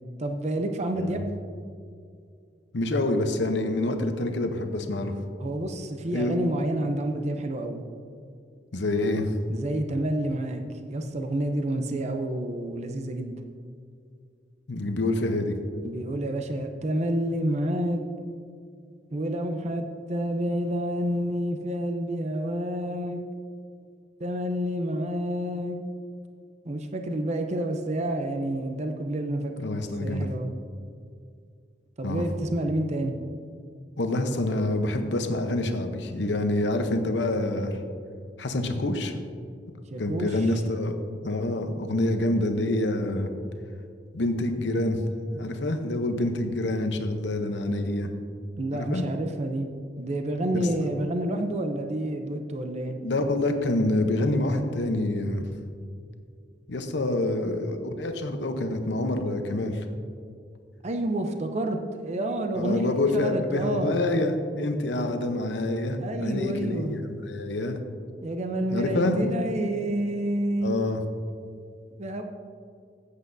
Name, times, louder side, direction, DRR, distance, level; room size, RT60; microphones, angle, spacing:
voice 1, 0.2-1.3 5.4-7.8 9.5-10.6 10.9-13.4 15.8-18.0 19.1-23.2 24.2-25.8 26.7-29.5 30.0-30.5 32.0-33.1 39.9-40.3 48.6-49.7 50.0-52.9 56.9-57.2 60.8-64.0 66.0-67.0 68.2-70.7 72.0-72.2, right 1 dB, 40° right, 5 dB, 0.6 m, -29 dB
voice 2, 2.7-5.2 6.1-6.4 8.7-9.3 14.7-15.6 29.6-30.3 32.0-32.2 34.0-37.7 38.4-39.1 40.0-41.0 41.2-43.3 44.1-45.0 45.3-48.1 48.7-49.0 50.5-50.7 53.0-55.4 56.7-59.8 62.6-67.8 68.7-69.3 70.6-71.0, left 2 dB, 90° left, 6 dB, 0.8 m, -27 dB
15.0 x 8.2 x 2.7 m, 2.3 s
head